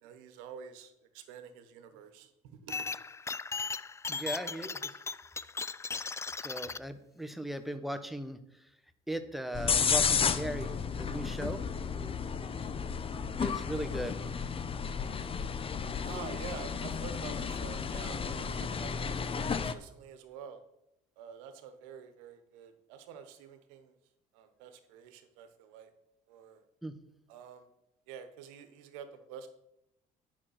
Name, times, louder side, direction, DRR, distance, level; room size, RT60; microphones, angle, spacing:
voice 1, 0.0-2.9 16.0-18.9 19.2-20.6 21.2-23.9 24.3-25.9 26.3-26.6 27.3-27.7 28.1-29.5, right 7 dB, 90° right, 9 dB, 1.1 m, -48 dB
sound 1, 2.7-6.8, left 4 dB, 15° left, 0.3 m, -37 dB
voice 2, 4.1-4.9 6.4-8.4 9.1-10.7 11.0-11.6 13.4-14.2 26.8-26.9, right 1 dB, ahead, 9 dB, 1.1 m, -37 dB
sound 2, 9.5-19.7, left 6 dB, 35° left, 0.7 m, -33 dB
9.0 x 5.9 x 6.5 m, 0.82 s
supercardioid pair, 80°, 17 cm